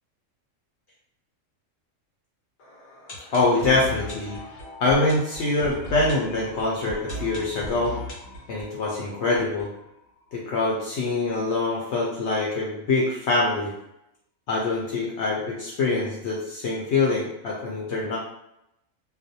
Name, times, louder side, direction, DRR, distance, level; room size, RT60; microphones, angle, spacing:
sound 1, 2.6-10.4 10.6-10.7 10.9-11.0 11.5-11.6, equal, 90° left, 1.1 m, -38 dB
voice 1, 3.3-4.4 4.8-8.0 8.5-9.7 10.3-13.7 14.5-18.2, left 3 dB, 65° left, -4 dB, 0.8 m, -24 dB
2.4 x 2.0 x 2.6 m, 0.81 s
omnidirectional pair, 1.3 m